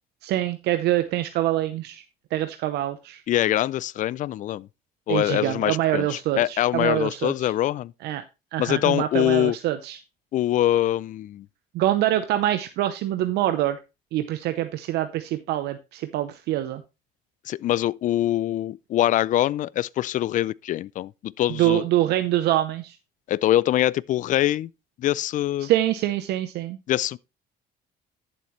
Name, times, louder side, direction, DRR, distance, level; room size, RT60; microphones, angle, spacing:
voice 1, 0.2-2.0 2.3-3.2 5.1-7.5 8.0-8.2 8.5-10.0 11.7-13.8 14.1-16.8 21.5-22.9 25.6-26.8, right 13 dB, 80° right, 0.8 m, -25 dB
voice 2, 3.3-4.7 5.1-7.9 8.6-9.6 10.3-11.4 17.5-21.8 23.3-24.7 25.0-25.7 26.9-27.2, left 13 dB, 50° left, 0.4 m, -24 dB
11.5 x 7.4 x 3.2 m
cardioid pair, 110°, 17 cm